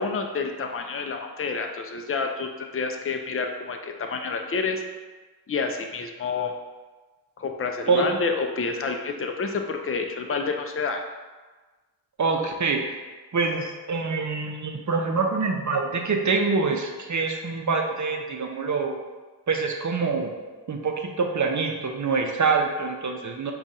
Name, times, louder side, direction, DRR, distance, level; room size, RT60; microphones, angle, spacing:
voice 1, 0.0-4.8 5.5-6.5 7.4-11.0, left 4 dB, 35° left, 4 dB, 0.4 m, -29 dB
voice 2, 12.2-13.0 13.3-19.0 19.5-20.3 20.7-23.5, right 4 dB, 45° right, 3 dB, 0.6 m, -25 dB
4.9 x 2.4 x 4.1 m, 1.3 s
wide cardioid pair, 85°, 41 cm